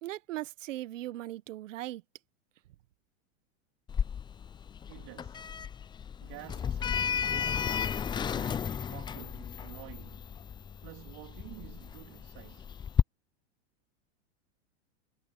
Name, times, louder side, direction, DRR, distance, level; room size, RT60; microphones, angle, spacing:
voice 1, 0.0-2.0, right 15 dB, 80° right, 1.4 m, -38 dB
Sliding door, 3.9-13.0, left 7 dB, 10° left, 0.4 m, -33 dB
voice 2, 4.9-5.4 6.2-7.7 8.3-10.3 10.8-12.7, right 25 dB, 55° right, 3.3 m, -50 dB
supercardioid pair, 125°, 38 cm